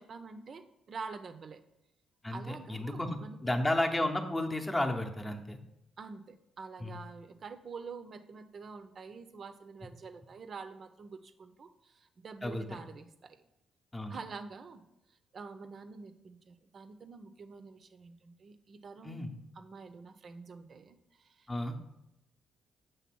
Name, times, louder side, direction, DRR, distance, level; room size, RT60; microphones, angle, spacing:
voice 1, 0.0-1.6 2.3-3.6 6.0-13.4 14.1-14.8 15.3-19.3 19.6-21.5, right 4 dB, 50° right, 10 dB, 0.6 m, -47 dB
voice 2, 2.2-5.6 6.8-7.0 12.4-12.8 13.9-14.2 19.0-19.3 21.5-21.7, left 1 dB, 15° left, 4 dB, 0.8 m, -33 dB
7.1 x 3.3 x 6.1 m, 0.86 s
cardioid pair, 90°, 0 cm